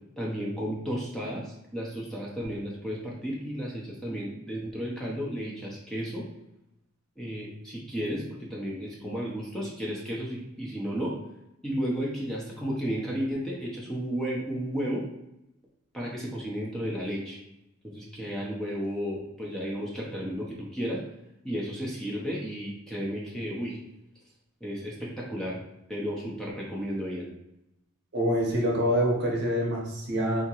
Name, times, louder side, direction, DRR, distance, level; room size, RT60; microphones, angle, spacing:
voice 1, 0.2-6.3 7.2-11.1 11.6-15.0 15.9-17.4 17.8-21.0 21.4-23.8 24.6-25.6 25.9-27.3, equal, 5° left, -4 dB, 0.6 m, -33 dB
voice 2, 28.1-30.4, equal, 55° right, -2 dB, 0.8 m, -26 dB
3.6 x 2.8 x 2.9 m, 0.88 s
head